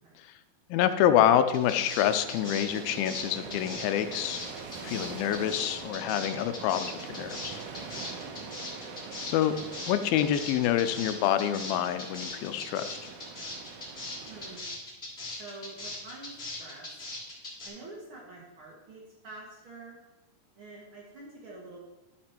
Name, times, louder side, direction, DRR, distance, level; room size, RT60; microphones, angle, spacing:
voice 1, 0.7-4.4 4.8-7.6 9.3-9.5 9.9-13.1, left 11 dB, 85° left, 10 dB, 2.3 m, -27 dB
sound 1, 1.5-17.7, left 2 dB, 20° left, 2.9 m, -40 dB
sound 2, 1.6-14.6, right 5 dB, 80° right, 2.6 m, -43 dB
voice 2, 14.3-14.7 15.3-17.0 17.6-20.0 20.5-21.8, right 2 dB, 55° right, -3 dB, 1.5 m, -47 dB
12.5 x 5.1 x 4.4 m, 1.0 s
omnidirectional pair, 4.3 m